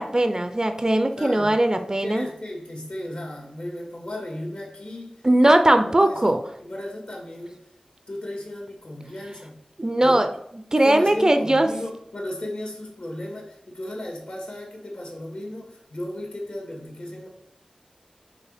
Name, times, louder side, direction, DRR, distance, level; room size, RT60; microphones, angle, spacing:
voice 1, 0.0-2.3 5.2-6.4 9.8-10.3 10.7-11.7, right 1 dB, 30° right, 8 dB, 0.5 m, -19 dB
voice 2, 1.1-7.6 8.1-9.6 10.0-10.2 10.7-17.3, left 1 dB, 65° left, 1 dB, 1.8 m, -35 dB
4.9 x 4.0 x 5.0 m, 0.74 s
wide cardioid pair, 70°, 2 cm